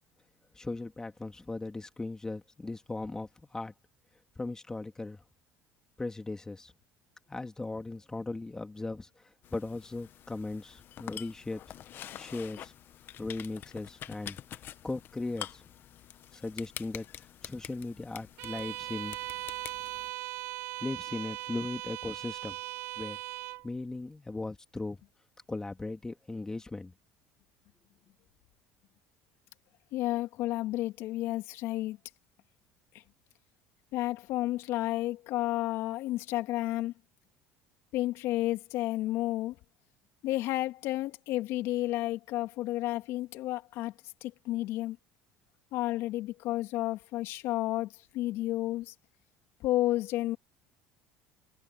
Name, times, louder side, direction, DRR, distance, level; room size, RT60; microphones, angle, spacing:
voice 1, 0.5-3.7 4.4-5.2 6.0-6.7 7.3-9.1 9.5-11.6 12.2-12.7 13.2-14.4 14.8-15.6 16.3-17.1 17.4-19.2 20.8-22.6 23.0-23.2 23.6-25.0 25.5-26.9, left 2 dB, 15° left, 2.8 m, -38 dB
sound 1, 9.4-20.1, left 11 dB, 50° left, 1.2 m, -47 dB
Bowed string instrument, 18.4-23.7, right 18 dB, 65° right, 1.3 m, -39 dB
voice 2, 29.9-32.0 32.9-33.0 33.9-36.9 37.9-39.6 40.2-43.9 44.2-45.0 45.7-48.9 49.6-50.4, left 16 dB, 70° left, 2.5 m, -31 dB
supercardioid pair, 95°, 5 cm